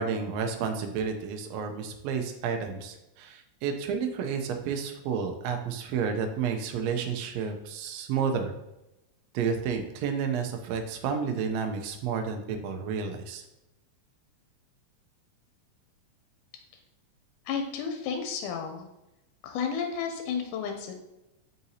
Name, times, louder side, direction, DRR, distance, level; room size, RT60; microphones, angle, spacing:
voice 1, 0.0-8.5 9.3-13.4, right 6 dB, 85° right, 4 dB, 1.5 m, -31 dB
voice 2, 17.5-18.9 19.4-20.9, left 6 dB, 85° left, 4 dB, 2.1 m, -32 dB
4.8 x 4.0 x 2.7 m, 0.93 s
omnidirectional pair, 3.5 m